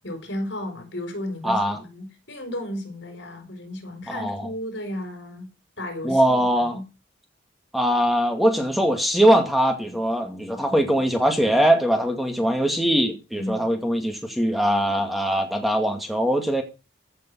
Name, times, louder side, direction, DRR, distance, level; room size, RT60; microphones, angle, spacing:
voice 1, 0.0-5.5 5.8-6.8 13.3-13.8, left 1 dB, 65° left, 4.8 m, -34 dB
voice 2, 1.4-1.8 4.1-4.5 6.0-6.8 7.7-16.6, right 1 dB, ahead, 2.1 m, -21 dB
15.5 x 6.9 x 6.2 m
head